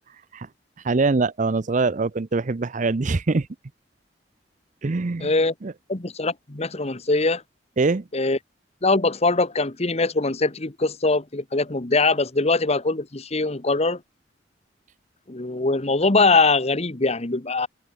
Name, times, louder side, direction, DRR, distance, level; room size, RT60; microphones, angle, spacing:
voice 1, 0.8-3.5 4.8-5.3 5.6-5.7 7.8-8.0, right 3 dB, 45° right, 0.6 m, -23 dB
voice 2, 5.2-5.5 5.9-7.4 8.1-8.4 8.8-14.0 15.3-17.7, left 3 dB, 35° left, 1.3 m, -22 dB
open air
head